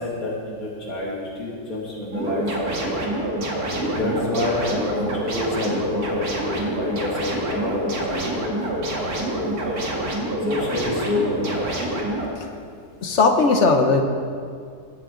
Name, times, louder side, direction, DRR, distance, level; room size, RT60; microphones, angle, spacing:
voice 1, 0.0-3.0 3.7-8.4 8.7-9.8 10.5-11.9, left 2 dB, 70° left, -5 dB, 2.7 m, -28 dB
sound 1, 2.1-12.3, right 1 dB, 75° right, 2.2 m, -27 dB
voice 2, 13.0-14.0, left 3 dB, 55° left, 5 dB, 1.1 m, -17 dB
22.0 x 7.7 x 3.8 m, 2.3 s
omnidirectional pair, 1.6 m